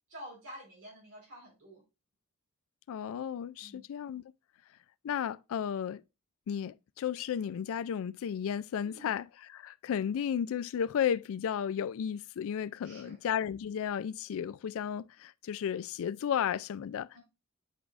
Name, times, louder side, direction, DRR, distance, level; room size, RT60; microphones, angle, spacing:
voice 1, 0.1-1.8 3.6-3.8 8.8-9.2 12.8-13.2 17.1-17.2, equal, 65° right, 4.0 m, -49 dB
voice 2, 2.9-4.2 5.0-6.0 6.5-17.1, left 8 dB, 65° left, 0.3 m, -33 dB
9.9 x 4.7 x 2.4 m
head